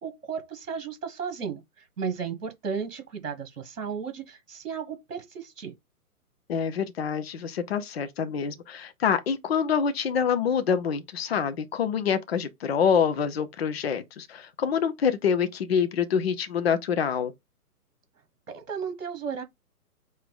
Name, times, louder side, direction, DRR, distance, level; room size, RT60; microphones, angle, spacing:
voice 1, 0.0-5.7 18.5-19.4, right 6 dB, 55° right, 1.4 m, -34 dB
voice 2, 6.5-17.3, left 7 dB, 40° left, 0.8 m, -26 dB
4.7 x 2.8 x 3.8 m
figure-of-eight pair, 130°, 46 cm